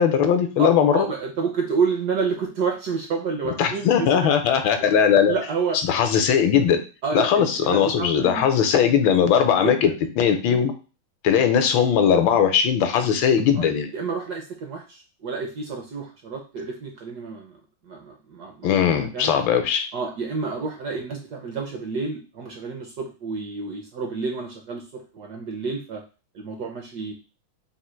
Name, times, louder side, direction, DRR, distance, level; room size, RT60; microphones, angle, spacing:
voice 1, 0.0-1.0 3.4-5.3 5.9-6.8 7.1-9.9 10.2-10.7 11.2-13.9 18.6-19.9, left 8 dB, 75° left, 7 dB, 1.4 m, -19 dB
voice 2, 0.6-4.3 5.3-5.8 7.0-8.4 9.6-9.8 10.5-10.7 11.4-11.5 13.6-17.6 17.9-18.7 19.0-19.3 19.9-26.0 26.3-27.1, right 5 dB, 70° right, 3 dB, 1.0 m, -29 dB
3.8 x 2.4 x 4.3 m, 0.33 s
omnidirectional pair, 2.2 m